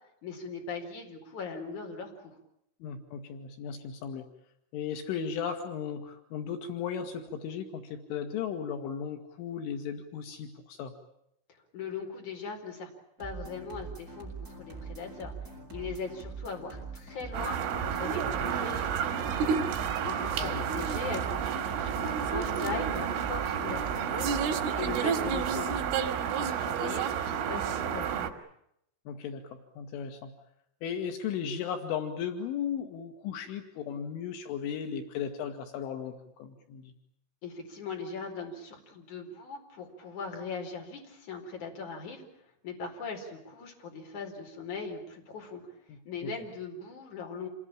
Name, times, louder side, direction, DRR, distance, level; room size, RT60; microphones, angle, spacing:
voice 1, 0.2-2.3 11.7-12.9 13.2-15.3 15.7-19.5 20.0-24.3 24.8-26.1 26.4-28.2 37.4-42.2 42.6-45.6 46.1-47.5, left 4 dB, 40° left, 2 dB, 5.5 m, -40 dB
voice 2, 2.8-4.3 4.7-10.9 20.4-20.7 29.1-30.3 30.8-36.9 46.2-46.3, left 7 dB, 80° left, 6 dB, 4.2 m, -36 dB
sound 1, 13.2-26.1, right 4 dB, 15° right, 7.1 m, -43 dB
sound 2, 17.3-28.3, right 7 dB, 85° right, 4.7 m, -30 dB
28.0 x 20.5 x 8.8 m, 0.77 s
omnidirectional pair, 5.6 m